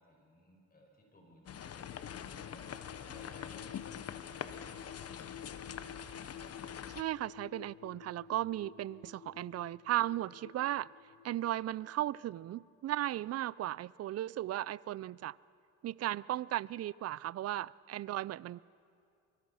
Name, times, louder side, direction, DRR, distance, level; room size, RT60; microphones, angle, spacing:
voice 1, 0.0-1.9 2.5-5.1, left 1 dB, 30° left, 1 dB, 6.2 m, -60 dB
sound 1, 1.5-7.0, left 8 dB, 55° left, 1.1 m, -44 dB
sound 2, 1.8-12.6 12.9-13.0, left 9 dB, 75° left, 0.9 m, -52 dB
voice 2, 6.9-10.9 11.2-15.4 15.8-18.6, right 14 dB, 55° right, 22 dB, 0.4 m, -36 dB
24.0 x 24.0 x 5.7 m, 2.4 s
cardioid pair, 90°, 30 cm